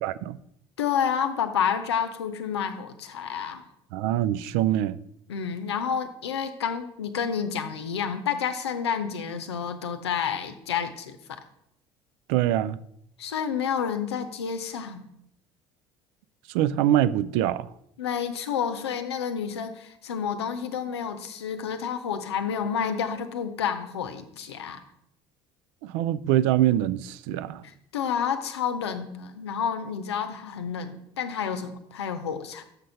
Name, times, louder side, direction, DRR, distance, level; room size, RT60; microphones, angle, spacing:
voice 1, 0.0-0.4 3.9-5.0 12.3-12.8 16.5-17.7 25.8-27.6, right 12 dB, 70° right, 0.4 m, -24 dB
voice 2, 0.8-3.6 5.3-11.2 13.2-15.0 18.0-24.8 27.6-32.6, left 7 dB, 85° left, 0.7 m, -29 dB
6.5 x 6.3 x 5.5 m
hypercardioid pair, 60°, 13 cm